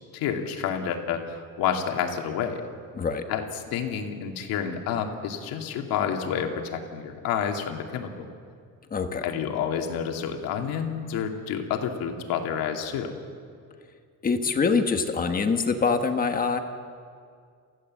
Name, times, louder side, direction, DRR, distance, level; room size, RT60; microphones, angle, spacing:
voice 1, 0.1-2.6 3.3-8.3 9.2-13.1, left 8 dB, 90° left, 3 dB, 2.5 m, -29 dB
voice 2, 8.9-9.2 14.2-16.6, left 5 dB, 25° left, 6 dB, 1.4 m, -24 dB
29.0 x 15.5 x 7.5 m, 2.2 s
cardioid pair, 160°, 34 cm